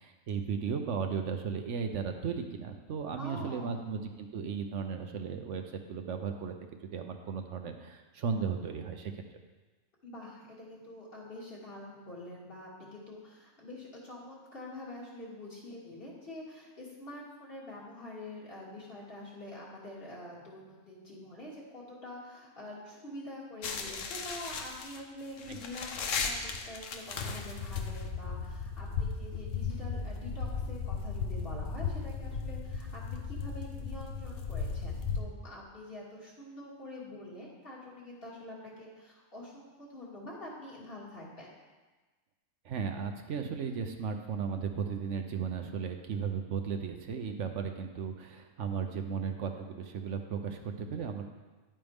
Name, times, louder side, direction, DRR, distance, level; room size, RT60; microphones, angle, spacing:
voice 1, 0.0-6.5 6.8-9.1 25.5-25.6 42.6-51.3, right 6 dB, 70° right, 5 dB, 1.1 m, -35 dB
voice 2, 3.1-3.7 10.0-41.5, left 1 dB, 45° left, -5 dB, 2.4 m, -46 dB
sound 1, 23.6-35.2, left 5 dB, 75° left, 1.2 m, -36 dB
10.5 x 8.8 x 3.6 m, 1.3 s
omnidirectional pair, 1.3 m